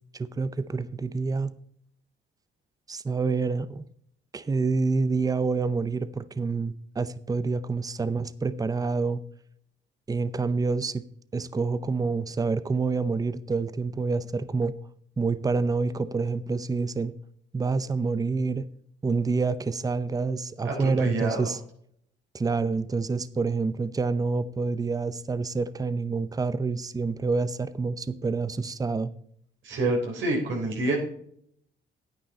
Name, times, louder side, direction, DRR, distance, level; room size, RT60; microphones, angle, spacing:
voice 1, 0.1-1.5 2.9-3.9 4.3-9.2 10.1-11.0 11.3-14.7 15.2-17.1 17.5-18.7 19.0-21.6 22.3-29.1, right 4 dB, 20° right, 16 dB, 0.6 m, -27 dB
voice 2, 20.6-21.5 29.6-31.0, right 2 dB, 75° right, 0 dB, 3.7 m, -27 dB
9.3 x 9.3 x 4.2 m, 0.66 s
cardioid pair, 90°, 20 cm